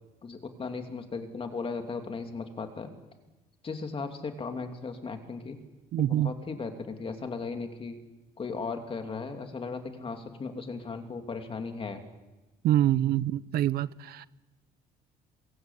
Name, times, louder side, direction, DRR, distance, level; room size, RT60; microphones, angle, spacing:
voice 1, 0.2-2.9 3.6-5.6 6.0-8.0 8.4-12.0, left 4 dB, 35° left, 2.8 m, -36 dB
voice 2, 5.9-6.3 12.6-14.3, right 12 dB, 65° right, 0.7 m, -25 dB
22.5 x 16.5 x 8.3 m
cardioid pair, 110°, 17 cm